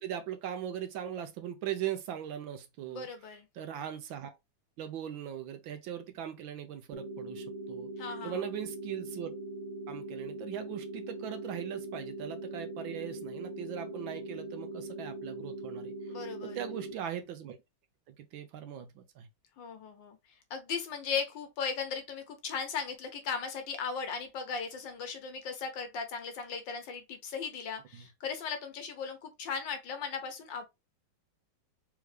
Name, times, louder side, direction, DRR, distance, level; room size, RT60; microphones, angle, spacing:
voice 1, 0.0-3.1 3.5-4.3 4.8-9.3 9.9-15.9 16.4-17.6 18.1-19.3 27.9-28.1, right 10 dB, 75° right, 1.3 m, -40 dB
voice 2, 2.9-3.4 8.0-8.3 16.1-16.6 19.6-20.2 20.5-30.7, left 6 dB, 70° left, 1.3 m, -37 dB
sound 1, 6.9-16.9, right 2 dB, 90° right, 1.9 m, -41 dB
3.6 x 3.5 x 3.2 m
omnidirectional pair, 2.4 m